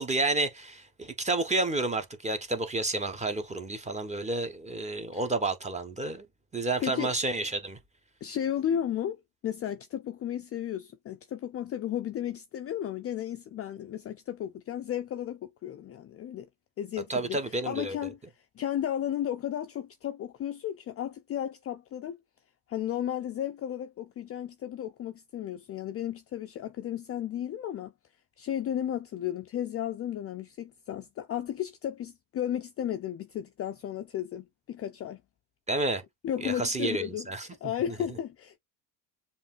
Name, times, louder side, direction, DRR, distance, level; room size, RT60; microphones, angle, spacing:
voice 1, 0.0-6.3 6.5-7.8 17.1-18.0 35.7-36.0 36.4-37.5, right 2 dB, 15° right, 1.1 m, -30 dB
voice 2, 6.8-7.1 8.2-16.5 16.8-18.2 18.6-22.2 22.7-27.9 28.4-35.2 36.2-38.6, left 10 dB, 30° left, 0.5 m, -34 dB
7.1 x 2.6 x 2.5 m
hypercardioid pair, 75°, 48 cm